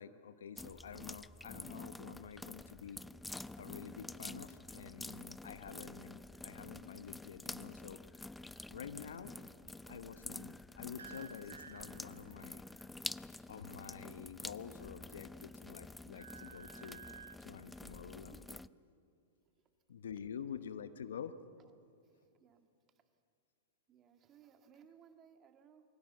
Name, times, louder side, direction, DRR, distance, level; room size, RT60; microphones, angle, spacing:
voice 1, 0.0-3.0 3.6-8.0 8.7-9.4 9.9-12.6 13.5-17.0 17.4-18.6 19.9-21.4, left 8 dB, 80° left, 13 dB, 1.0 m, -48 dB
sound 1, 0.6-18.7, left 2 dB, 5° left, 0.4 m, -48 dB
sound 2, 11.0-12.5 14.4-15.2 15.6-17.4, right 6 dB, 90° right, 1.3 m, -54 dB
voice 2, 22.0-22.7 23.9-25.8, right 8 dB, 30° right, 7 dB, 1.7 m, -63 dB
23.0 x 16.0 x 8.0 m, 2.5 s
hypercardioid pair, 110°, 0 cm